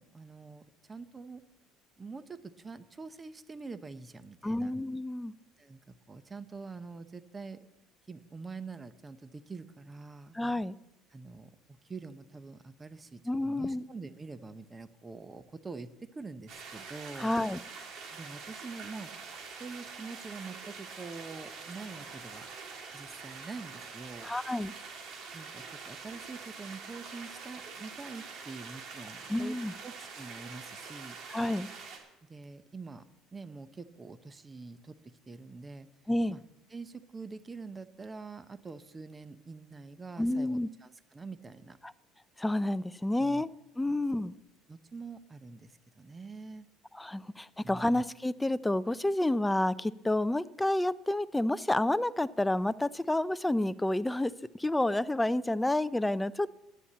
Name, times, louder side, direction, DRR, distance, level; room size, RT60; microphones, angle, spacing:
voice 1, 0.0-1.4 2.0-4.7 5.6-7.6 8.1-10.4 11.1-17.3 18.1-19.1 19.6-22.5 22.9-24.3 25.3-29.5 29.8-31.2 32.3-33.0 33.3-34.9 35.3-35.9 36.3-36.4 36.7-41.8 43.2-43.4 44.7-46.7 47.6-48.0, right 4 dB, 20° right, 12 dB, 0.7 m, -45 dB
voice 2, 4.4-5.3 10.3-10.8 13.3-13.8 17.2-17.6 24.2-24.7 29.3-29.7 31.3-31.7 36.1-36.4 40.2-40.7 42.4-43.5 43.8-44.3 46.9-56.5, left 1 dB, 5° left, 15 dB, 0.3 m, -29 dB
sound 1, 16.5-32.0, right 5 dB, 55° right, 2.6 m, -45 dB
11.0 x 7.0 x 8.6 m, 0.92 s
cardioid pair, 135°, 0 cm